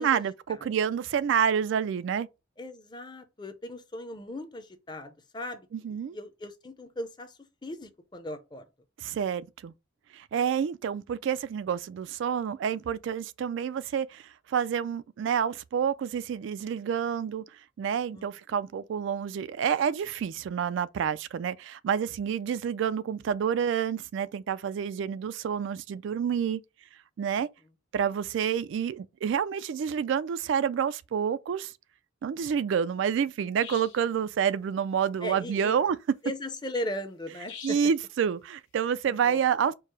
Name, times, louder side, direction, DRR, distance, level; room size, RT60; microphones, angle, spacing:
voice 1, 0.0-2.3 5.7-6.2 9.0-9.7 10.1-17.4 17.8-26.6 27.2-27.5 27.9-31.7 32.2-36.0 37.6-39.7, right 7 dB, 75° right, 0.3 m, -28 dB
voice 2, 2.6-8.6 18.1-18.3 35.2-35.8 36.2-37.8 39.1-39.4, left 1 dB, 25° left, 0.5 m, -38 dB
sound 1, 33.6-34.1 37.5-38.0, left 7 dB, 80° left, 1.1 m, -44 dB
4.6 x 2.0 x 4.6 m
head